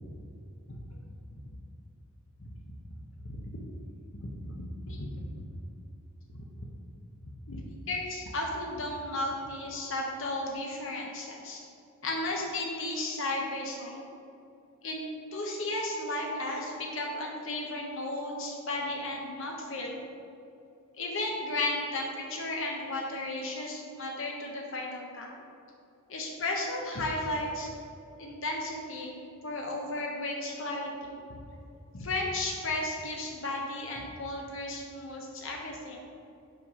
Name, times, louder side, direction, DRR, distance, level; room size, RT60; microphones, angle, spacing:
voice 1, 4.1-5.2 6.3-6.4 7.5-11.6 12.0-14.1 14.8-15.0 15.3-20.0 21.0-25.3 26.1-27.7 28.2-29.2 29.4-31.4 31.9-36.0, left 2 dB, 60° left, -1 dB, 0.9 m, -34 dB
5.6 x 5.5 x 4.9 m, 2.6 s
head